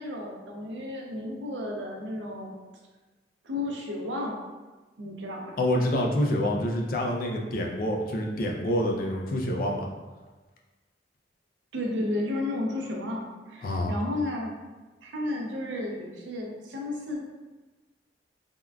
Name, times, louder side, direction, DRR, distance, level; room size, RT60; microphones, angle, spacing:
voice 1, 0.0-2.5 3.4-4.4 5.0-5.6 11.7-14.5 15.0-17.2, left 1 dB, 90° right, -1 dB, 0.6 m, -32 dB
voice 2, 5.6-9.9 13.6-14.0, left 1 dB, 50° left, 0 dB, 0.4 m, -27 dB
3.5 x 2.2 x 2.3 m, 1.2 s
head